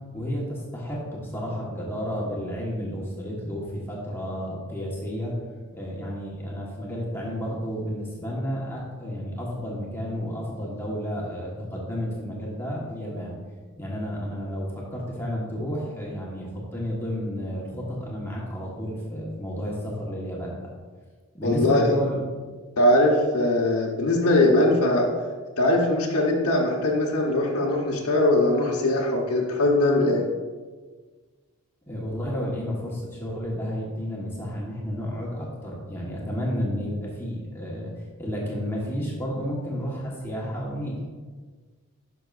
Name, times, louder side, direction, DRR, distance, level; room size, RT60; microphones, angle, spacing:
voice 1, 0.1-5.3 5.7-13.4 13.8-20.7 21.3-22.3 31.8-37.9 38.2-41.1, equal, 10° left, -4 dB, 1.4 m, -31 dB
voice 2, 21.4-21.9 22.8-25.1 25.6-30.2, left 1 dB, 90° left, -3 dB, 1.2 m, -21 dB
11.0 x 6.0 x 2.6 m, 1.5 s
head